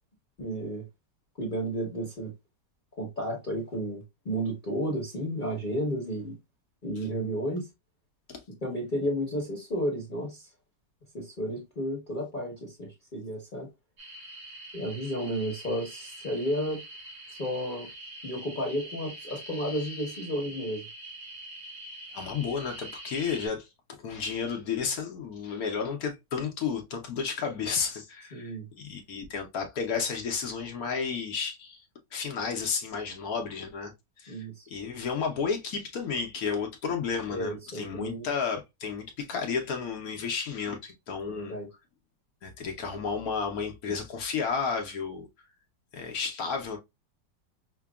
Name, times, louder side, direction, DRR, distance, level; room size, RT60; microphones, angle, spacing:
voice 1, 0.4-0.8 1.4-2.3 3.0-6.4 6.8-7.7 8.6-10.4 11.1-13.7 14.7-16.8 17.3-17.9 18.2-20.8 28.3-28.7 34.3-34.7 37.3-38.3 41.3-41.7, equal, 35° left, 1.0 m, -32 dB
sound 1, 14.0-23.5, right 1 dB, 45° right, 1.6 m, -44 dB
voice 2, 22.1-23.7 24.0-31.8 32.1-33.9 34.2-41.5 42.4-45.3 45.9-46.8, left 6 dB, 65° left, 1.1 m, -32 dB
5.8 x 2.2 x 2.3 m
omnidirectional pair, 1.9 m